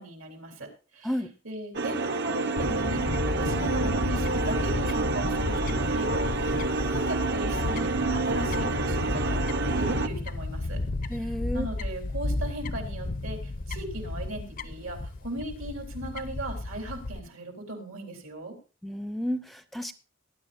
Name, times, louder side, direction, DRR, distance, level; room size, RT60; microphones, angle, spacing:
voice 1, 0.0-1.1 1.4-10.8 11.1-18.6, right 1 dB, 75° right, 2 dB, 3.7 m, -37 dB
sound 1, 1.7-10.1, right 3 dB, 55° right, 1.0 m, -28 dB
Fowl / Bird, 2.6-17.2, left 2 dB, 40° left, 0.6 m, -32 dB
voice 2, 11.1-11.7 18.8-19.9, equal, ahead, 10 dB, 0.6 m, -31 dB
18.5 x 10.5 x 2.6 m, 0.33 s
head